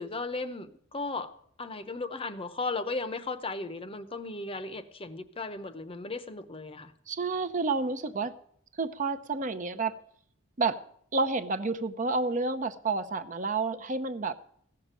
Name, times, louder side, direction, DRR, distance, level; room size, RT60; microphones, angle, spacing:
voice 1, 0.0-1.3 1.6-6.9, left 3 dB, 25° left, 11 dB, 0.8 m, -36 dB
voice 2, 7.1-8.3 8.8-10.0 10.6-10.8 11.1-14.3, right 3 dB, 40° right, 9 dB, 0.7 m, -30 dB
16.0 x 6.7 x 8.8 m, 0.65 s
head